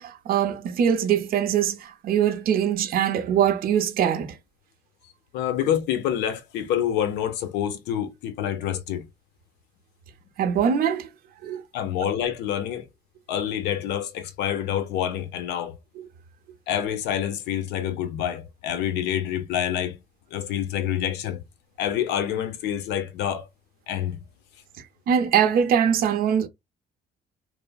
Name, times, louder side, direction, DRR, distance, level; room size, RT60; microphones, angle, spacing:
voice 1, 0.0-4.3 10.4-11.1 11.4-11.6 12.0-12.1 16.0-16.1 25.1-26.5, right 8 dB, 60° right, 0.6 m, -22 dB
voice 2, 5.3-9.1 11.7-12.8 13.3-15.7 16.7-20.0 20.3-21.4 21.8-23.4 23.9-24.2, left 10 dB, 90° left, 0.6 m, -27 dB
3.2 x 2.0 x 2.2 m
cardioid pair, 110°, 17 cm